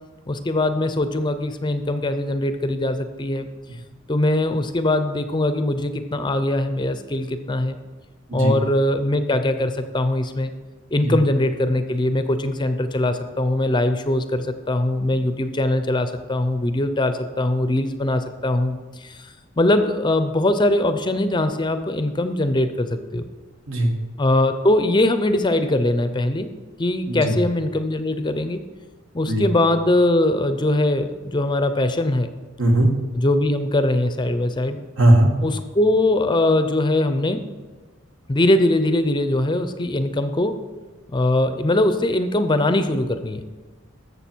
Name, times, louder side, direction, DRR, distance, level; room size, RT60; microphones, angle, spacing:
voice 1, 0.3-3.5 4.1-7.8 8.3-10.5 10.9-19.3 19.6-23.2 24.2-26.5 26.8-28.6 29.1-32.3 33.1-34.8 35.4-37.4 38.3-40.6 41.1-43.4, left 1 dB, 20° left, 10 dB, 0.5 m, -21 dB
voice 2, 27.1-27.4 29.3-29.5 32.6-32.9 35.0-35.3, right 1 dB, 75° right, 2 dB, 1.7 m, -18 dB
14.0 x 6.7 x 4.5 m, 1.3 s
head